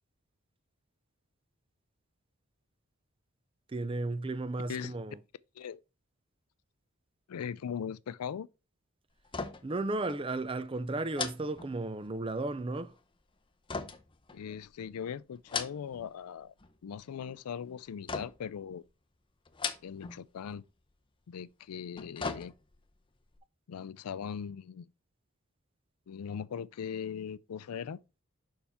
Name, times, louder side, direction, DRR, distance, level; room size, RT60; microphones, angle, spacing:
voice 1, 3.7-5.2 9.6-12.9, right 2 dB, 25° right, 0.4 m, -34 dB
voice 2, 7.3-8.5 14.3-16.5 16.8-18.8 19.8-20.6 21.3-22.5 23.7-24.9 26.1-28.0, left 7 dB, 85° left, 0.4 m, -39 dB
sound 1, 9.2-9.8 10.1-10.3 11.1-12.2 13.7-14.8 15.3-16.1 16.4-17.0 18.1-18.6 19.5-20.2 20.5-20.6 21.7-22.9 23.3-23.4, left 5 dB, 20° left, 0.6 m, -39 dB
7.0 x 5.6 x 3.5 m
head